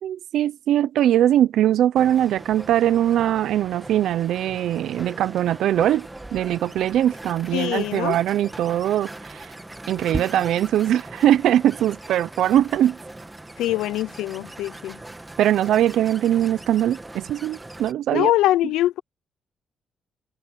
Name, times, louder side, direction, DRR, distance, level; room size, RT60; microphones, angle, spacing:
voice 1, 0.0-6.1 6.3-9.5 9.9-13.0 15.4-18.3, right 11 dB, 75° right, 0.6 m, -21 dB
sound 1, 2.0-17.9, right 2 dB, 15° right, 1.6 m, -39 dB
voice 2, 7.5-8.2 13.6-15.0 18.1-19.0, left 14 dB, 90° left, 0.5 m, -23 dB
cardioid pair, 90°, 0 cm